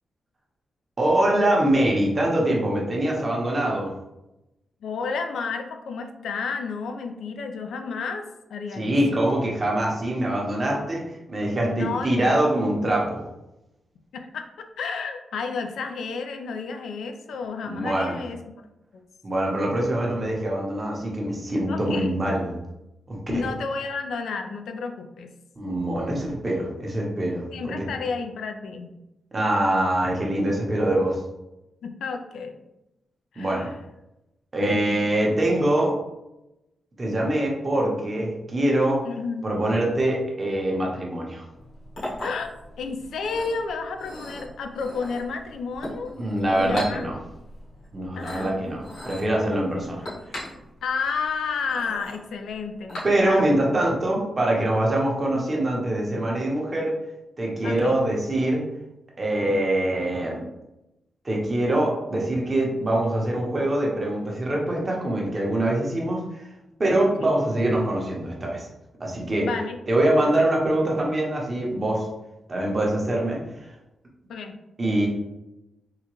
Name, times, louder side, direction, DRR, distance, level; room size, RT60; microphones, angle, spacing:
voice 1, 1.0-3.9 8.7-11.0 11.3-13.2 17.6-18.2 19.2-22.6 23.1-23.5 25.6-27.9 29.3-31.2 33.4-33.7 34.5-36.0 37.0-39.1 39.4-41.4 46.2-47.1 47.9-50.1 53.0-57.0 57.4-58.6 59.2-60.4 61.2-66.5 66.8-68.7 69.0-69.5 69.9-72.1 72.5-73.4 74.8-75.1, right 1 dB, 30° right, -2 dB, 0.8 m, -24 dB
voice 2, 4.8-8.3 8.5-9.2 11.5-12.4 14.1-18.4 18.9-19.0 21.7-22.2 23.3-25.3 27.5-28.9 31.8-32.6 33.3-33.7 34.6-35.1 39.0-39.6 42.2-42.5 42.8-46.1 46.5-47.0 48.2-48.5 50.8-53.7 55.3-55.5 57.6-58.0 67.0-67.1 69.4-69.8 70.4-70.5 74.3-74.5, left 5 dB, 90° left, 5 dB, 0.3 m, -31 dB
Chink clink, 41.5-53.6, left 1 dB, 75° left, 1.4 m, -39 dB
3.7 x 2.2 x 3.0 m, 0.93 s
wide cardioid pair, 140°, 0 cm